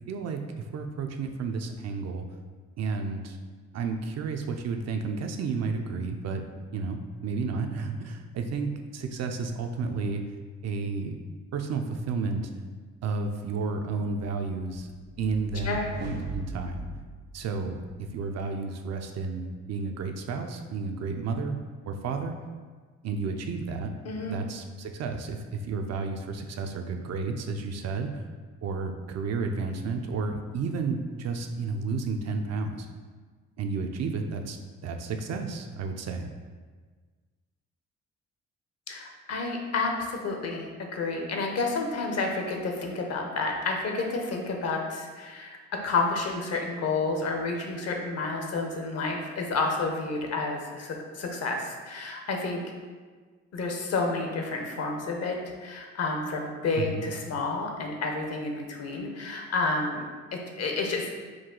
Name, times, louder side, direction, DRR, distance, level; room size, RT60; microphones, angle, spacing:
voice 1, 0.1-2.3 2.8-3.4 3.7-6.4 6.7-10.2 10.6-11.2 11.5-12.5 13.0-14.9 15.2-16.9 17.3-21.6 21.9-22.3 23.0-23.9 24.3-28.2 28.6-32.9 33.6-34.6 34.8-36.3 56.8-57.0, right 4 dB, 60° right, 5 dB, 0.5 m, -32 dB
sound 1, 14.8-18.1, right 2 dB, 90° right, 0.9 m, -40 dB
voice 2, 24.0-24.4 38.9-52.6 53.5-61.1, left 3 dB, 55° left, 2 dB, 0.7 m, -30 dB
4.6 x 2.3 x 3.7 m, 1.5 s
cardioid pair, 90°, 30 cm